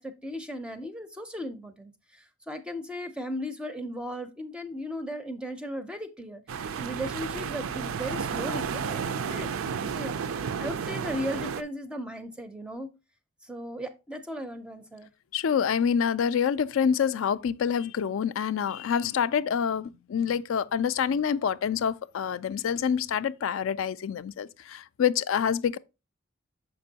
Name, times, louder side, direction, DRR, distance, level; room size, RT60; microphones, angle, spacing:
voice 1, 0.0-10.1 10.6-12.9 13.4-15.1, equal, 5° right, 0.4 m, -37 dB
sound 1, 6.5-11.6, right 6 dB, 75° right, 0.4 m, -32 dB
voice 2, 15.3-25.8, left 7 dB, 70° left, 0.3 m, -27 dB
6.8 x 5.2 x 2.7 m
head